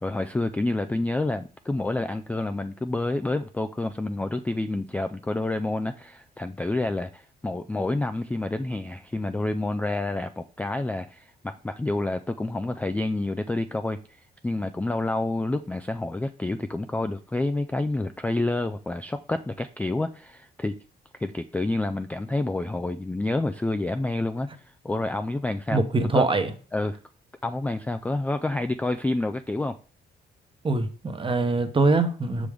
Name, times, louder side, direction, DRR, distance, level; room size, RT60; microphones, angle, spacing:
voice 1, 0.0-20.8 21.2-24.5 24.8-25.8 26.1-26.3 26.7-27.0 27.4-29.8, left 2 dB, 5° left, 0.3 m, -28 dB
voice 2, 25.7-26.5 30.6-32.5, right 3 dB, 25° right, 0.9 m, -23 dB
6.2 x 5.1 x 3.4 m
cardioid pair, 90°, 20 cm